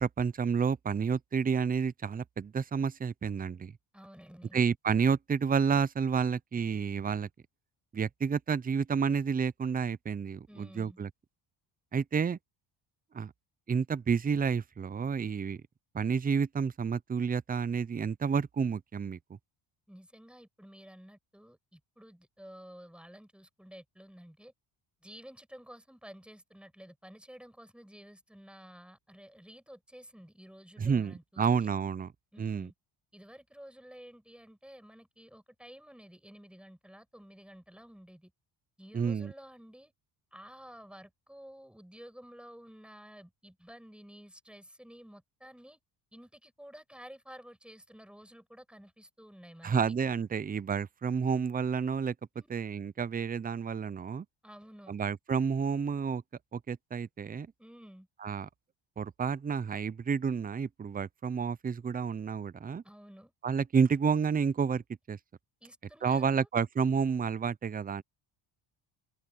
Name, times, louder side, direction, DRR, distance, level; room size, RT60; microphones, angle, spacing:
voice 1, 0.0-3.7 4.5-7.3 7.9-11.1 11.9-12.4 13.1-13.3 13.7-15.6 15.9-19.2 30.8-32.1 32.4-32.7 38.9-39.3 49.6-52.1 52.5-54.3 54.9-56.2 56.5-57.5 58.2-58.5 59.0-62.8 63.4-64.8 65.1-65.2 66.0-68.0, right 6 dB, 20° right, 0.5 m, -30 dB
voice 2, 3.9-4.6 10.5-11.0 19.9-24.5 25.0-31.7 32.3-32.7 33.1-38.3 38.8-39.9 40.3-45.8 46.1-49.8 52.4-52.5 54.4-55.0 57.6-58.1 62.8-63.3 65.6-66.5, equal, ahead, 5.9 m, -52 dB
open air
cardioid pair, 105°, 49 cm